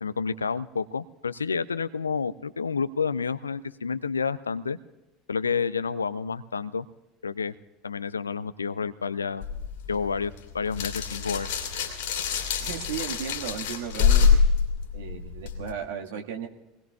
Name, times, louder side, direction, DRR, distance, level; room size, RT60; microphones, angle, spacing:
voice 1, 0.0-4.8 5.3-6.9 7.2-7.5 7.8-9.4 9.9-11.5, left 5 dB, 85° left, 15 dB, 0.5 m, -29 dB
sound 1, 9.4-15.7, left 6 dB, 65° left, 2.7 m, -25 dB
voice 2, 12.6-14.4 14.9-16.5, right 8 dB, 70° right, 2 dB, 1.7 m, -35 dB
26.0 x 20.0 x 2.4 m, 1.0 s
figure-of-eight pair, 70°, 0 cm